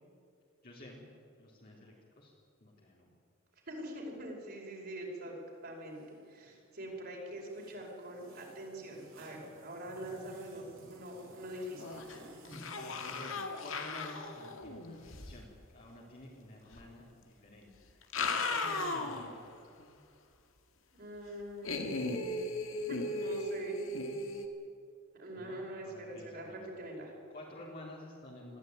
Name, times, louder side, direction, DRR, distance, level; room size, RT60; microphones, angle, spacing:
voice 1, 0.6-1.1 1.4-2.3 2.6-3.1 12.4-18.2 18.5-19.6 25.4-26.7 27.3-28.6, left 1 dB, 45° left, -5 dB, 3.7 m, -51 dB
voice 2, 3.7-5.4 5.6-6.0 6.3-12.0 20.9-22.5 22.9-23.8 25.2-27.1, right 1 dB, 50° right, -1 dB, 5.4 m, -44 dB
sound 1, 5.4-13.3, right 1 dB, 70° right, 6.9 m, -57 dB
sound 2, 11.8-12.2 12.4-15.3 16.7-16.8 17.9-19.4 19.8-19.9 21.6-24.5, left 3 dB, 70° left, 2.1 m, -37 dB
21.5 x 15.0 x 9.5 m, 2.4 s
head